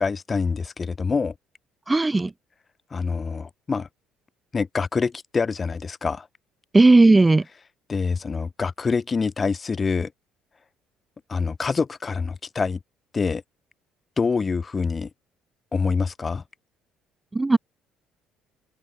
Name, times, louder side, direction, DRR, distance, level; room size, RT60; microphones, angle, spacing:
voice 1, 0.0-1.3 2.9-3.9 4.5-6.3 7.9-10.1 11.3-12.8 13.1-13.4 14.2-15.1 15.7-16.4, left 5 dB, 35° left, 1.3 m, -25 dB
voice 2, 1.9-2.3 6.7-7.4 17.3-17.6, right 2 dB, 20° right, 0.4 m, -15 dB
open air
hypercardioid pair, 55°, 0 cm